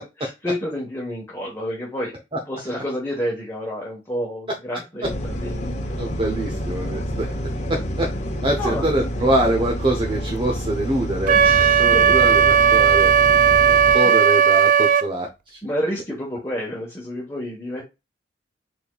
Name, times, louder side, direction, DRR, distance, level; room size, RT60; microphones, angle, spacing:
voice 1, 0.0-2.1 2.5-5.7 8.6-9.3 11.3-12.3 14.0-14.2 15.6-17.8, equal, 15° left, -3 dB, 1.2 m, -30 dB
sound 1, 5.0-14.0, equal, 40° left, 0.9 m, -28 dB
voice 2, 6.0-7.3 7.7-8.1 8.4-11.4 11.8-13.1 13.9-15.3, right 1 dB, 30° right, 1 dB, 0.8 m, -24 dB
Wind instrument woodwind instrument, 11.3-15.1, right 7 dB, 45° right, 0.3 m, -15 dB
5.1 x 4.3 x 2.3 m, 0.25 s
head